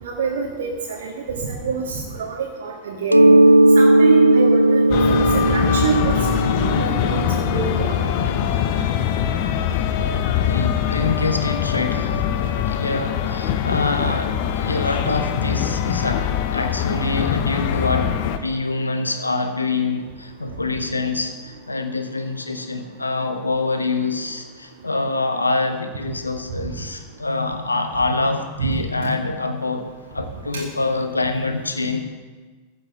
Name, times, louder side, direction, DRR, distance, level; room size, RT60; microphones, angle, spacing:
voice 1, 0.0-3.3 3.8-8.2 28.6-29.1 30.5-30.6, right 6 dB, 60° right, -2 dB, 1.8 m, -26 dB
Mallet percussion, 3.1-8.6, right 1 dB, 90° right, 0.3 m, -16 dB
sound 1, 4.9-18.4, left 9 dB, 50° left, 0.9 m, -23 dB
voice 2, 10.4-32.0, left 3 dB, 80° left, 7 dB, 1.3 m, -25 dB
14.5 x 6.5 x 7.7 m, 1.3 s
figure-of-eight pair, 90°, 0 cm